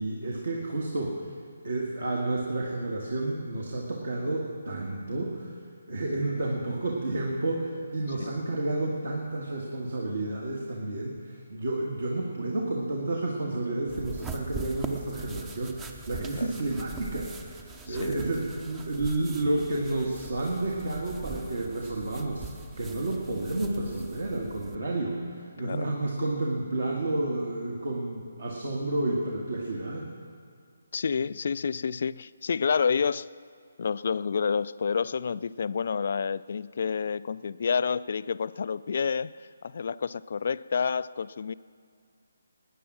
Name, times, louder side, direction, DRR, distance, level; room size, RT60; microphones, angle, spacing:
voice 1, 0.0-1.3 1.6-30.1, right 2 dB, 60° right, -1 dB, 1.8 m, -31 dB
sound 1, 13.9-24.8, right 4 dB, 10° right, 0.7 m, -42 dB
voice 2, 17.9-18.2 25.6-25.9 30.9-33.3 33.8-41.5, left 6 dB, 45° left, 17 dB, 0.3 m, -29 dB
19.0 x 10.0 x 6.2 m, 2.2 s
figure-of-eight pair, 145°, 0 cm